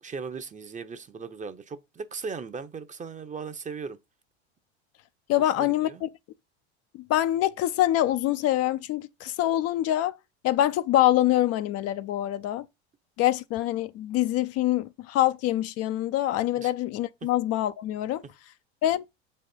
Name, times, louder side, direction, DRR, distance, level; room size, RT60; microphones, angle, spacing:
voice 1, 0.0-4.0 5.4-6.0 16.6-16.7 17.2-17.3, right 5 dB, 20° right, 0.9 m, -38 dB
voice 2, 5.3-6.1 7.1-10.2 10.4-12.6 13.2-18.2 18.8-19.0, left 13 dB, 45° left, 0.6 m, -25 dB
7.2 x 4.4 x 5.3 m
hypercardioid pair, 80°, 35 cm